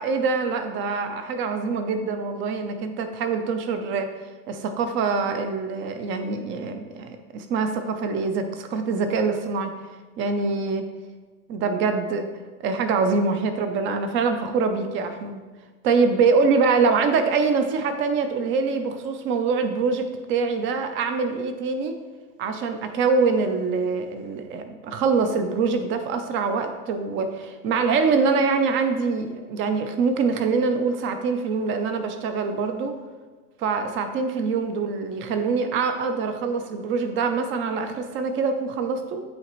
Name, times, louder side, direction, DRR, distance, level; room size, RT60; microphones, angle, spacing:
voice 1, 0.0-4.1 4.5-9.7 10.2-10.8 11.5-12.3 12.6-15.4 15.8-21.9 22.4-33.0 33.6-39.2, right 4 dB, 30° right, 7 dB, 0.5 m, -24 dB
8.6 x 4.1 x 3.0 m, 1.4 s
supercardioid pair, 135°, 41 cm